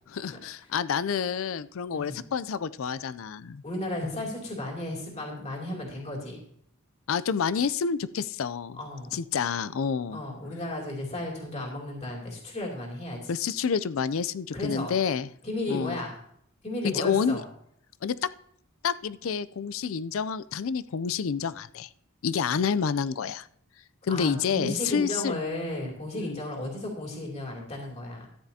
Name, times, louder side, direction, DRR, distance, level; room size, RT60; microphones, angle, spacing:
voice 1, 0.1-3.6 7.1-8.8 9.1-10.2 13.3-15.3 15.7-16.0 16.8-17.4 18.0-18.3 18.8-21.9 22.2-23.5 24.0-25.4 26.2-26.4, left 6 dB, 65° left, 16 dB, 0.4 m, -28 dB
voice 2, 3.6-6.4 8.8-9.2 10.1-13.3 14.5-14.9 15.4-16.2 16.6-17.4 24.1-28.3, left 1 dB, 30° left, -1 dB, 2.7 m, -34 dB
14.0 x 9.8 x 2.8 m, 0.67 s
head